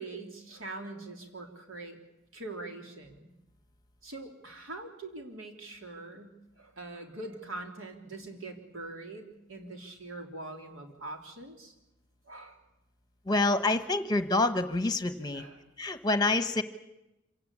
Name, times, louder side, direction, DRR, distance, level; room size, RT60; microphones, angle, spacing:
voice 1, 0.0-2.0 2.3-3.2 4.0-11.7 12.2-12.6 15.3-15.6, right 2 dB, 85° right, 3 dB, 3.4 m, -43 dB
voice 2, 13.2-15.4 15.8-16.6, left 2 dB, 20° left, 10 dB, 1.1 m, -27 dB
26.5 x 17.5 x 8.5 m, 0.95 s
head